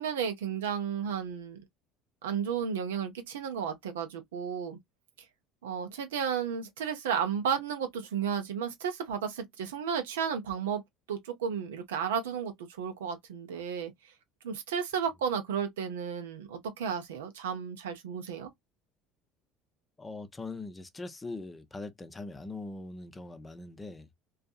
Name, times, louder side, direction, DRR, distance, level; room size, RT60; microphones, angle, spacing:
voice 1, 0.0-1.6 2.2-4.8 5.6-10.8 11.1-13.9 14.4-18.5, right 7 dB, 90° right, 0.6 m, -33 dB
voice 2, 20.0-24.2, left 3 dB, 20° left, 0.5 m, -41 dB
2.6 x 2.3 x 2.2 m
hypercardioid pair, 80°, 0 cm